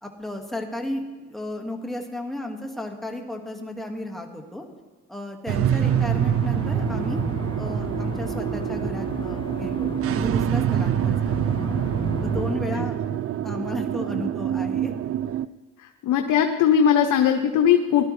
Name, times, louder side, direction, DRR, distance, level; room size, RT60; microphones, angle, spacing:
voice 1, 0.0-4.7 5.1-7.3 7.6-11.5 12.2-12.9 13.4-14.9, left 1 dB, ahead, 2 dB, 1.8 m, -34 dB
sound 1, 5.5-15.5, right 10 dB, 50° right, 0.4 m, -25 dB
sound 2, 5.8-12.5, left 2 dB, 15° left, 1.7 m, -33 dB
voice 2, 16.0-18.1, left 8 dB, 85° left, 5 dB, 0.9 m, -19 dB
17.5 x 12.0 x 3.3 m, 1.3 s
cardioid pair, 90°, 30 cm